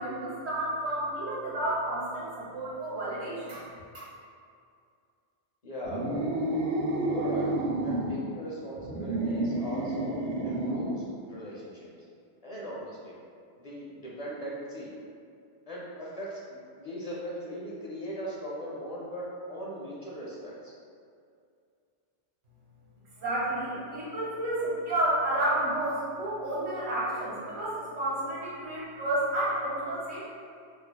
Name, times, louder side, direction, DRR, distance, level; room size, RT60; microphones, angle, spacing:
voice 1, 0.0-3.7 23.2-30.2, right 1 dB, 70° right, -7 dB, 1.2 m, -31 dB
voice 2, 5.6-6.1 7.0-7.5 7.8-10.2 10.4-11.9 12.4-13.2 13.6-14.9 15.7-20.7, equal, 50° left, -6 dB, 0.5 m, -39 dB
sound 1, 5.8-8.2 8.7-11.0, right 1 dB, 85° right, 0.9 m, -30 dB
4.6 x 2.6 x 2.2 m, 2.3 s
omnidirectional pair, 1.2 m